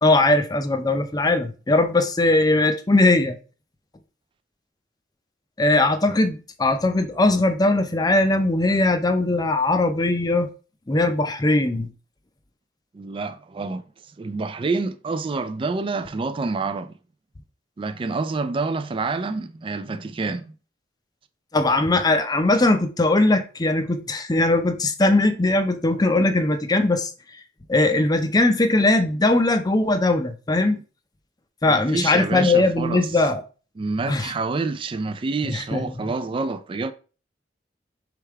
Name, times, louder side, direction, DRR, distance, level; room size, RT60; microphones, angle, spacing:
voice 1, 0.0-3.4 5.6-10.5 10.9-11.9 21.5-27.1 27.7-30.8 31.6-33.4 34.1-34.3 35.4-36.1, left 2 dB, 20° left, 0.5 m, -20 dB
voice 2, 12.9-13.8 14.2-16.9 17.8-20.5 31.7-33.0 33.8-36.9, right 3 dB, 30° right, 0.3 m, -27 dB
3.5 x 3.3 x 4.6 m
head